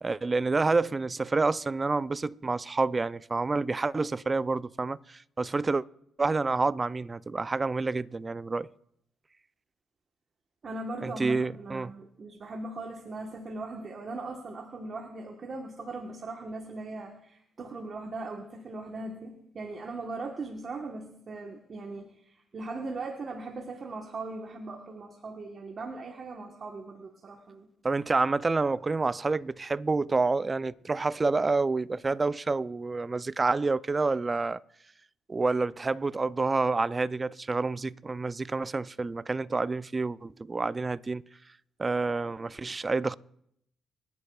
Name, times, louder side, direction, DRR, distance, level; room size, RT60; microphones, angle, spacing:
voice 1, 0.0-5.8 6.2-8.7 11.0-11.9 27.8-34.6 35.3-41.2 41.8-43.2, right 3 dB, 25° right, 0.3 m, -28 dB
voice 2, 10.6-27.7, right 3 dB, 45° right, 1.1 m, -39 dB
27.0 x 10.0 x 2.3 m
cardioid pair, 90°, 0 cm